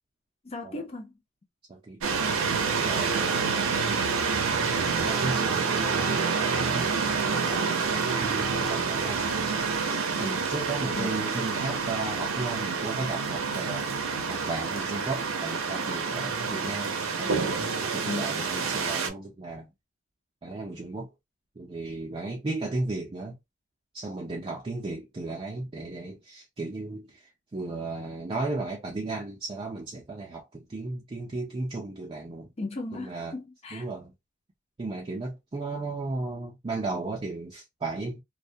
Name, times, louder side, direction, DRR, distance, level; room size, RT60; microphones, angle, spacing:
voice 1, 0.4-1.1 11.0-11.3 18.0-18.3 32.6-33.9, left 2 dB, 30° left, 0.5 m, -36 dB
sound 1, 2.0-19.1, right 5 dB, 75° right, 0.6 m, -28 dB
voice 2, 2.4-3.4 4.5-6.1 6.4-9.3 10.2-13.9 14.3-19.7 20.4-21.1 21.6-23.4 23.9-32.5 32.9-33.4 33.7-34.1 34.8-38.2, right 2 dB, 25° right, 0.4 m, -35 dB
2.2 x 2.1 x 2.6 m
head